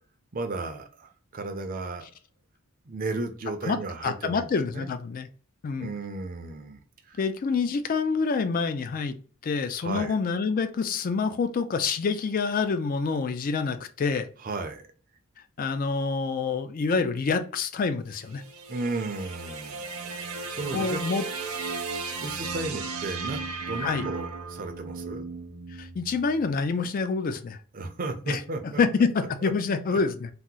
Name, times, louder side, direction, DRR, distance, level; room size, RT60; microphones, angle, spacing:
voice 1, 0.3-2.1 2.9-4.5 4.7-4.9 5.8-7.2 9.8-10.2 14.4-14.8 18.7-21.0 22.2-25.2 27.7-28.8 29.4-29.5 29.9-30.0, right 3 dB, 40° right, 6 dB, 0.5 m, -34 dB
voice 2, 4.0-5.3 5.6-5.9 7.2-9.1 9.4-14.3 15.6-18.4 20.7-21.2 23.8-24.1 25.8-27.6 28.3-28.4 28.8-30.3, left 4 dB, 40° left, 10 dB, 0.3 m, -27 dB
sound 1, 18.1-26.4, right 4 dB, 75° right, 0.7 m, -36 dB
2.8 x 2.0 x 3.6 m, 0.41 s
head